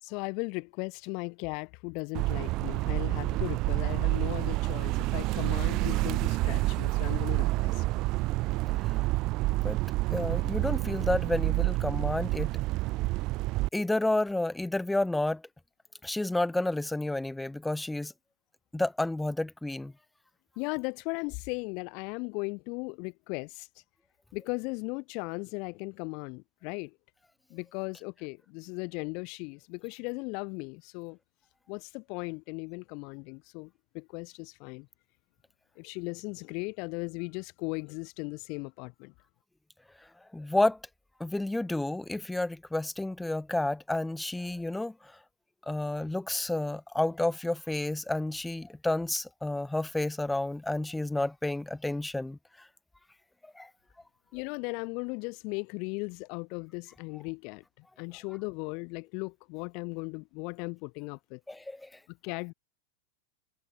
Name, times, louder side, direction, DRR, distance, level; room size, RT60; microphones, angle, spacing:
voice 1, 0.0-7.8 20.6-23.7 24.3-26.9 27.5-31.2 31.7-34.9 35.8-39.1 54.3-57.6 58.0-61.4 62.1-62.5, left 32 dB, 45° left, 4.8 m, -37 dB
sound 1, 2.1-13.7, right 20 dB, 40° right, 2.1 m, -28 dB
voice 2, 10.1-12.5 13.7-15.4 16.0-18.1 18.7-19.9 40.3-40.8 41.2-44.9 45.7-52.4 53.6-53.7 61.5-61.9, left 2 dB, 5° left, 0.7 m, -30 dB
figure-of-eight pair, 90°, 0 cm